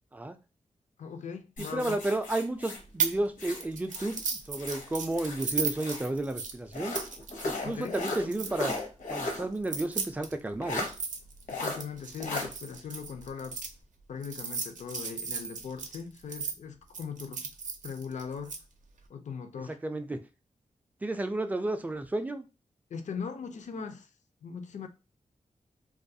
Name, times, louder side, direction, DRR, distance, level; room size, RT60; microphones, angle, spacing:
voice 1, 1.0-2.0 7.6-8.0 11.5-13.6 14.1-17.5 17.8-18.6 19.1-19.8 22.9-24.1 24.4-24.9, left 6 dB, 65° left, 0.4 m, -39 dB
sound 1, 1.6-4.2 4.6-6.1 6.7-9.5 9.8-9.9 10.6-10.9 11.5-11.8 12.2-12.5, left 2 dB, 85° left, 0.8 m, -36 dB
voice 2, 1.6-7.0 7.4-8.7 9.1-10.9 19.7-20.2 21.0-22.5, right 2 dB, 10° right, 0.3 m, -32 dB
sound 2, 3.0-3.2 3.5-8.8 9.6-13.7 14.2-16.5 16.9-18.6, right 5 dB, 75° right, 0.5 m, -35 dB
2.3 x 2.3 x 2.6 m
wide cardioid pair, 100°, 13 cm